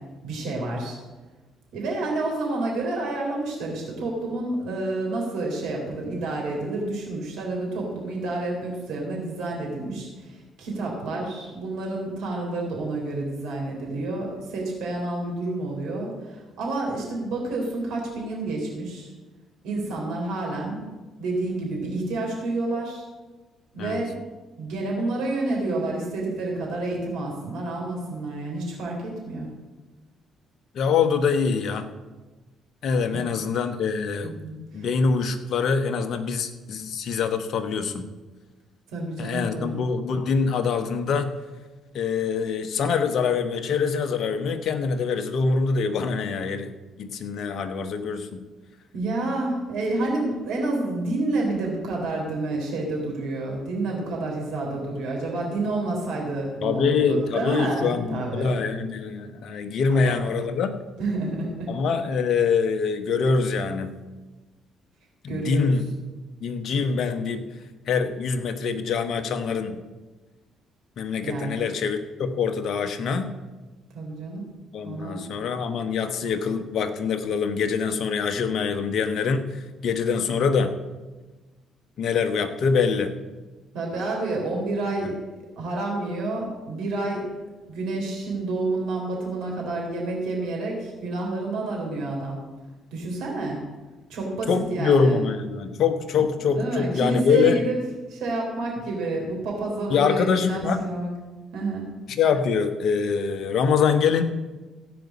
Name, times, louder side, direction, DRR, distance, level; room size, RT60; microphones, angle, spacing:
voice 1, 0.2-1.0 1.7-19.1 19.6-20.8 21.2-23.0 23.7-24.1 24.6-29.5 33.1-33.4 34.2-34.8 38.9-39.8 48.9-58.5 59.9-60.2 61.0-61.7 65.3-65.7 71.2-71.6 73.9-74.5 74.8-75.3 83.7-85.1 85.5-87.2 87.7-92.4 92.9-93.6 94.1-95.2 96.2-97.8 98.1-101.1 101.5-101.9, right 2 dB, 75° right, -2 dB, 3.6 m, -29 dB
voice 2, 30.7-31.9 32.8-34.3 34.7-38.1 39.2-41.3 41.9-46.7 47.0-48.4 56.6-60.7 61.7-64.0 65.2-65.9 66.4-67.4 67.9-69.8 71.0-73.2 74.7-79.4 79.8-80.7 82.0-83.1 85.0-85.1 94.5-97.6 99.9-101.0 102.2-104.2, left 5 dB, 60° left, 8 dB, 1.2 m, -24 dB
15.5 x 5.3 x 8.4 m, 1.2 s
hypercardioid pair, 50°, 0 cm